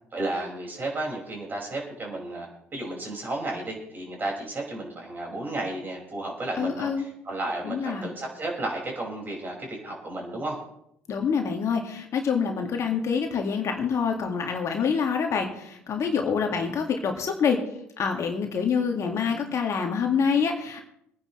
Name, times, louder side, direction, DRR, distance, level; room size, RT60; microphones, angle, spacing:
voice 1, 0.1-10.6, right 2 dB, 30° right, -1 dB, 5.5 m, -33 dB
voice 2, 6.5-7.0 7.6-8.1 11.1-17.6 18.0-20.8, left 6 dB, 45° left, 3 dB, 2.0 m, -26 dB
24.0 x 9.9 x 3.2 m, 0.74 s
figure-of-eight pair, 55°, 7 cm